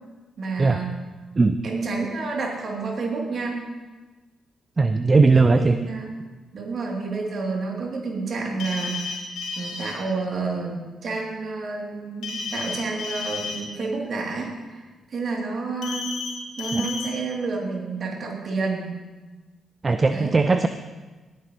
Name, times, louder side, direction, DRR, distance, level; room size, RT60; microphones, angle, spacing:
voice 1, 0.4-1.0 1.6-3.6 5.3-6.1 6.5-9.2 9.6-14.8 15.1-16.2 16.6-18.9 20.1-20.4, right 4 dB, 55° right, -1 dB, 2.9 m, -29 dB
voice 2, 4.8-5.8 16.8-16.9 19.8-20.7, right 3 dB, 35° right, 10 dB, 0.6 m, -18 dB
sound 1, 8.6-9.9 12.2-13.6 15.8-16.3 16.6-17.1, left 5 dB, 70° left, 2.9 m, -32 dB
18.5 x 9.9 x 3.1 m, 1.2 s
hypercardioid pair, 40°, 0 cm